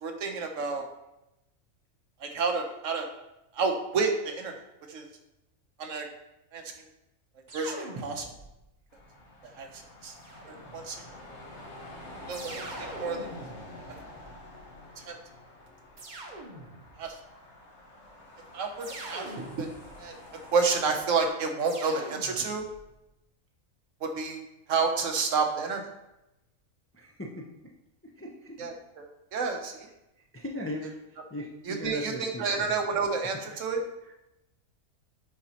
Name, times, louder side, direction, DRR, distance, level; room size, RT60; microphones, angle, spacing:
voice 1, 0.0-0.9 2.2-3.1 3.5-4.5 4.9-5.0 5.8-6.1 6.5-6.6 7.5-8.3 9.4-10.1 10.5-11.0 12.3-13.2 15.0-15.1 17.0-17.2 18.5-19.7 20.0-20.1 20.5-22.6 24.0-24.4 24.7-25.9 28.6-29.9 30.8-30.9 31.6-33.8, right 4 dB, 70° right, 4 dB, 1.2 m, -30 dB
sound 1, 7.5-8.7 10.2-11.1 12.3-14.6 16.0-17.1 18.8-20.2 21.6-22.9, right 2 dB, 40° right, 0.9 m, -43 dB
sound 2, 8.9-21.3, left 1 dB, 55° left, 1.6 m, -48 dB
voice 2, 26.9-27.7 28.0-28.7 30.2-33.0 33.5-33.6 34.0-34.1, left 1 dB, 15° left, 0 dB, 0.4 m, -39 dB
9.7 x 4.0 x 2.9 m, 0.90 s
omnidirectional pair, 1.4 m